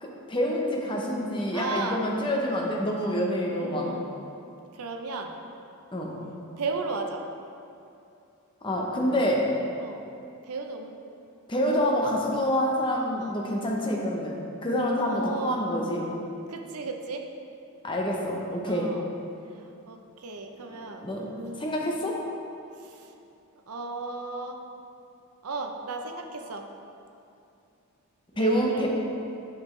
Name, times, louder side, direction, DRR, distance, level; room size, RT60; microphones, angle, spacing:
voice 1, 0.0-4.0 5.9-6.1 8.6-9.5 11.5-16.1 17.8-18.9 21.0-21.2 21.6-22.2 28.4-28.9, equal, 20° left, -1 dB, 0.9 m, -27 dB
voice 2, 1.5-2.0 3.5-4.2 4.7-5.4 6.6-7.2 9.8-10.1 10.4-11.0 11.5-12.4 13.2-13.4 15.1-15.6 16.5-17.3 18.7-19.1 19.5-21.7 22.8-23.1 23.7-24.6 25.4-26.7 28.3-28.9, right 3 dB, 85° right, 4 dB, 0.7 m, -36 dB
9.0 x 6.0 x 3.2 m, 2.6 s
head